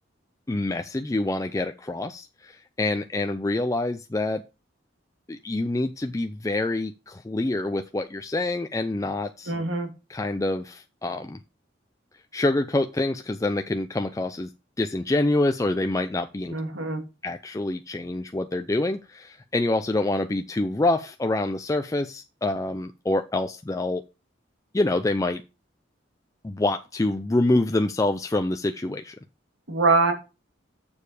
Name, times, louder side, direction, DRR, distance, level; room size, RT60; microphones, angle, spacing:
voice 1, 0.5-4.4 5.3-9.5 10.1-11.4 12.3-14.5 14.8-16.5 17.2-24.0 24.7-25.4 26.4-29.1, left 2 dB, 15° left, 7 dB, 0.4 m, -26 dB
voice 2, 9.5-9.9 16.5-17.0 29.7-30.1, right 3 dB, 85° right, 4 dB, 2.2 m, -23 dB
7.2 x 6.7 x 4.8 m, 0.29 s
head